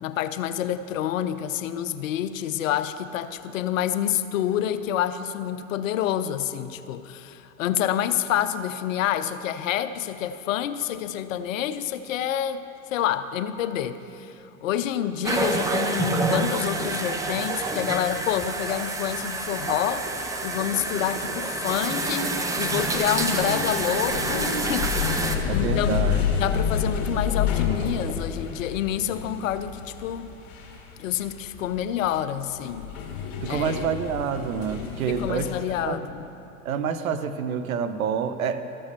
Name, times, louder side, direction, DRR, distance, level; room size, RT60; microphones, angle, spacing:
voice 1, 0.0-12.6 12.9-20.1 20.4-26.0 26.4-30.3 31.0-32.9 33.5-33.8 35.1-36.3, left 10 dB, 70° left, 12 dB, 0.7 m, -28 dB
sound 1, 15.2-25.4, right 2 dB, 10° right, 0.5 m, -28 dB
sound 2, 19.5-28.2, right 2 dB, 45° right, 1.6 m, -39 dB
sound 3, 23.1-35.8, left 7 dB, 45° left, 2.0 m, -30 dB
voice 2, 25.5-26.2 33.4-35.5 35.8-36.0 36.6-38.6, right 7 dB, 75° right, 11 dB, 0.8 m, -27 dB
13.5 x 5.5 x 6.8 m, 2.8 s
hypercardioid pair, 100°, 41 cm